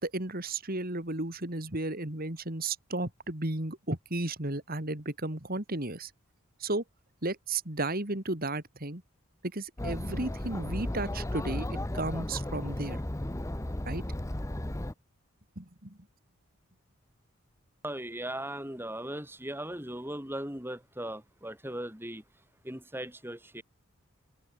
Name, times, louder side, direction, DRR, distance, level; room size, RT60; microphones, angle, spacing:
voice 1, 0.0-6.1 6.6-6.8 7.2-9.0 9.5-13.0 13.8-14.0 15.6-16.0, right 2 dB, 40° right, 3.1 m, -34 dB
Chatter, 9.8-14.9, left 1 dB, 15° left, 0.8 m, -34 dB
voice 2, 17.8-22.2 22.6-23.6, right 1 dB, 10° right, 7.0 m, -38 dB
open air
head